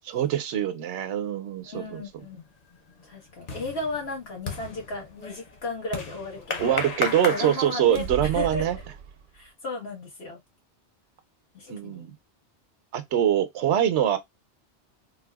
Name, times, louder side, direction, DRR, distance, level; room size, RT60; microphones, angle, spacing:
voice 1, 0.1-2.0 6.6-8.8 11.7-12.1 12.9-14.2, right 10 dB, 85° right, 0.9 m, -24 dB
voice 2, 1.6-2.4 3.0-6.8 7.3-8.8 9.3-10.4 11.5-12.0, left 3 dB, 65° left, 1.6 m, -35 dB
sound 1, 1.8-2.2 2.6-8.3, left 3 dB, 45° left, 0.6 m, -35 dB
sound 2, 7.8-9.5, right 7 dB, 60° right, 0.6 m, -36 dB
3.9 x 2.3 x 2.3 m
omnidirectional pair, 1.2 m